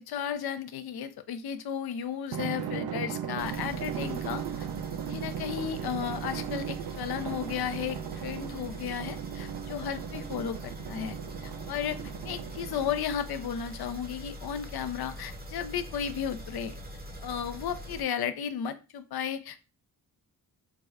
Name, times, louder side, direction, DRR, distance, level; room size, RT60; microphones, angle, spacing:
voice 1, 0.0-4.7 5.1-11.1 11.4-12.0 12.3-16.8 17.2-19.6, left 8 dB, 70° left, 10 dB, 0.5 m, -34 dB
Drum, 2.3-13.3, right 9 dB, 70° right, 0.5 m, -37 dB
sound 1, 3.4-18.0, equal, 25° right, 0.8 m, -43 dB
4.7 x 2.1 x 2.3 m, 0.31 s
cardioid pair, 60°, 39 cm